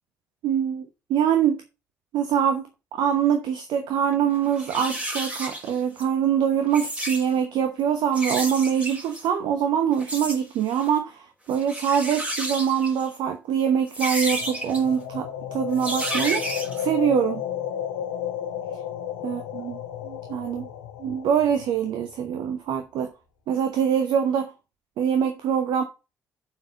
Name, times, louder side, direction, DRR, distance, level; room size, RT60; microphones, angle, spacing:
voice 1, 0.4-0.8 1.1-1.6 2.1-16.4 16.8-17.4 19.2-19.8 20.0-20.7 21.0-23.1 23.5-24.5 25.0-25.8, right 8 dB, 60° right, 1.0 m, -24 dB
sound 1, 4.0-4.1 4.5-6.0 6.6-7.3 8.1-9.3 10.0-10.4 10.7-11.0 11.5-13.2 13.9-14.8 15.7-16.8, right 1 dB, 15° right, 3.4 m, -31 dB
sound 2, 14.2-22.3, left 9 dB, 75° left, 1.2 m, -33 dB
7.3 x 4.7 x 6.3 m
figure-of-eight pair, 45°, 8 cm